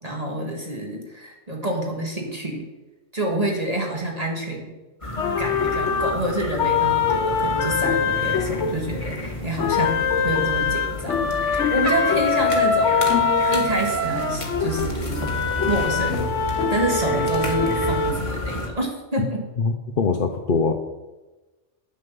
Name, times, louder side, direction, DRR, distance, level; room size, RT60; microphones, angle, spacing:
voice 1, 0.0-2.7 3.1-4.7 5.4-13.1 13.5-15.3 15.7-16.2 16.7-19.4, right 1 dB, 35° right, 0 dB, 1.8 m, -28 dB
sound 1, 5.0-18.7, left 1 dB, 25° left, 1.8 m, -32 dB
sound 2, 5.2-9.3 9.6-18.2, left 7 dB, 75° left, 1.1 m, -23 dB
Trumpet, 11.8-14.4, right 9 dB, 55° right, 0.7 m, -27 dB
voice 2, 19.6-20.7, left 4 dB, 50° left, 4 dB, 0.8 m, -22 dB
9.6 x 7.4 x 6.8 m, 1.1 s
omnidirectional pair, 1.2 m